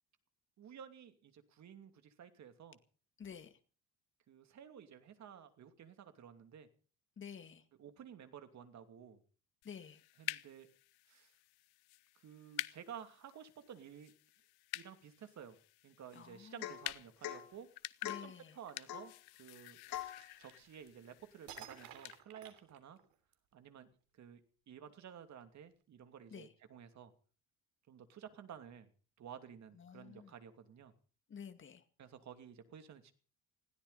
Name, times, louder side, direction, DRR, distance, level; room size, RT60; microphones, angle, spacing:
voice 1, 0.6-2.8 4.3-6.7 7.8-9.2 10.2-10.7 11.1-11.3 12.2-14.1 14.7-15.6 15.8-17.7 18.1-19.1 19.4-19.8 20.4-23.0 23.5-23.9 24.1-24.4 24.7-27.1 27.9-28.9 29.2-30.9 32.0-33.1, right 8 dB, 45° right, 2.8 m, -53 dB
voice 2, 3.2-3.5 7.2-7.6 9.6-10.0 16.1-16.6 18.0-18.5 26.3-26.5 29.8-30.3 31.3-31.8, left 7 dB, 30° left, 2.1 m, -50 dB
sound 1, 9.6-22.2, left 19 dB, 90° left, 0.9 m, -49 dB
Domestic sounds home sounds / Chink clink / Drip, 16.6-16.9 17.2-17.5 18.0-18.3 18.9-19.1 19.9-20.2, left 12 dB, 70° left, 3.8 m, -43 dB
sound 2, 19.9-21.0 21.5-23.3, right 11 dB, 70° right, 3.4 m, -54 dB
20.5 x 16.5 x 4.1 m
cardioid pair, 150°, 37 cm